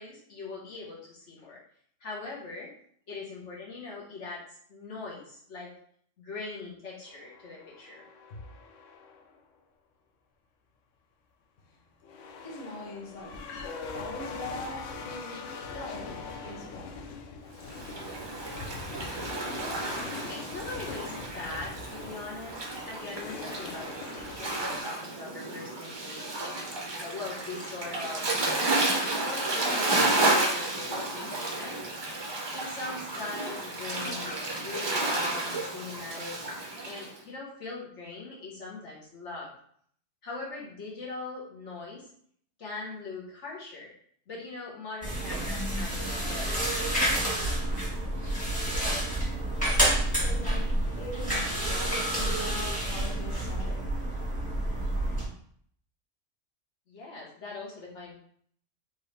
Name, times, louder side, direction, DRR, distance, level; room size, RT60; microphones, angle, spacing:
voice 1, 0.0-1.6 2.0-2.7 3.1-4.4 4.7-5.7 6.2-8.0 19.5-19.8 20.3-26.3 27.0-28.2 28.7-28.9 29.1-31.8 32.5-36.3 36.8-39.5 40.2-42.1 42.6-43.9 44.3-47.4 56.9-58.1, left 3 dB, 70° left, 1.6 m, -41 dB
sound 1, 7.1-9.4 12.0-24.8, left 4 dB, 90° left, 0.9 m, -42 dB
voice 2, 12.4-13.5 13.9-17.1 49.9-54.1, left 1 dB, 40° left, 0.8 m, -42 dB
Waves surf, 17.6-37.1, right 2 dB, 35° right, 0.4 m, -31 dB
sound 2, 45.0-55.2, right 1 dB, 5° left, 1.5 m, -29 dB
4.5 x 3.0 x 3.3 m
omnidirectional pair, 1.3 m